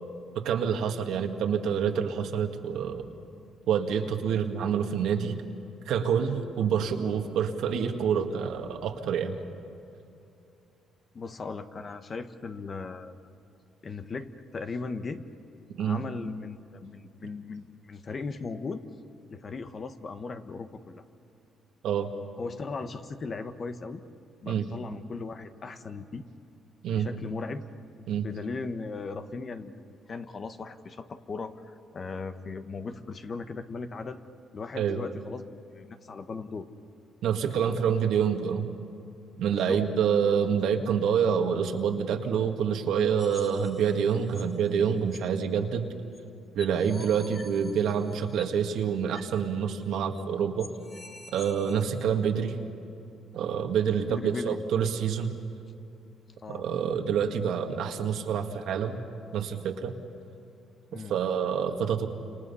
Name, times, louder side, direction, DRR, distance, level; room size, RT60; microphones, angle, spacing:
voice 1, 0.4-3.1 3.7-5.3 5.9-9.4 15.8-16.0 21.8-22.1 24.5-24.6 26.8-27.1 28.1-28.3 34.7-35.0 37.2-38.7 39.4-45.9 46.5-50.7 51.3-52.6 53.3-55.3 56.5-59.0 59.3-59.9 60.9-62.1, right 7 dB, 80° right, 4 dB, 2.0 m, -27 dB
voice 2, 11.1-13.1 13.8-15.2 15.8-18.8 19.3-21.0 22.4-24.0 24.4-26.2 26.9-27.6 28.1-29.7 30.1-34.2 34.5-36.6 39.5-39.8 40.2-40.3 54.0-54.6 56.4-56.7 60.9-61.1, left 4 dB, 45° left, 8 dB, 1.4 m, -38 dB
sound 1, 43.2-44.6 45.1-45.2 46.1-46.2 46.6-48.6 49.1-49.3 49.6-49.7 50.2-50.3 50.6-51.8, left 2 dB, 20° left, 1.7 m, -48 dB
29.5 x 27.5 x 5.6 m, 2.7 s
cardioid pair, 90°, 0 cm